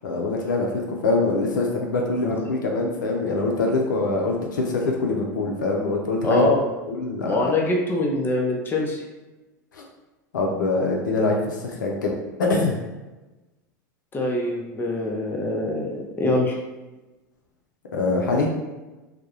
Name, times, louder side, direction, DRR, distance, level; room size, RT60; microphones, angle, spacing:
voice 1, 0.0-6.5 6.9-7.5 10.3-12.1 12.4-12.8 17.9-18.5, left 3 dB, 80° left, 0 dB, 0.5 m, -24 dB
voice 2, 6.2-6.7 7.3-9.0 14.1-16.5, left 2 dB, 20° left, -1 dB, 0.5 m, -24 dB
2.2 x 2.0 x 2.9 m, 1.1 s
hypercardioid pair, 90°, 10 cm